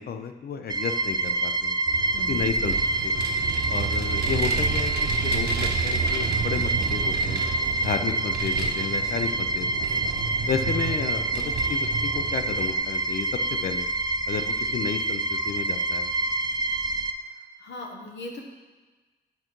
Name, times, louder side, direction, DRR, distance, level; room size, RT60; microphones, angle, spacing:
voice 1, 0.0-1.8 2.3-2.8 3.0-3.3 3.7-7.4 7.8-10.1 10.5-13.3 13.6-13.9 14.3-16.1, left 7 dB, 60° left, 8 dB, 0.6 m, -32 dB
sound 1, 0.7-17.1, right 2 dB, 25° right, 0.4 m, -27 dB
Vehicle, 1.9-12.8, right 5 dB, 65° right, 0.9 m, -31 dB
voice 2, 2.1-2.5 17.3-18.4, left 2 dB, 90° left, 1 dB, 1.2 m, -39 dB
10.5 x 3.8 x 4.5 m, 1.3 s
cardioid pair, 105°, 18 cm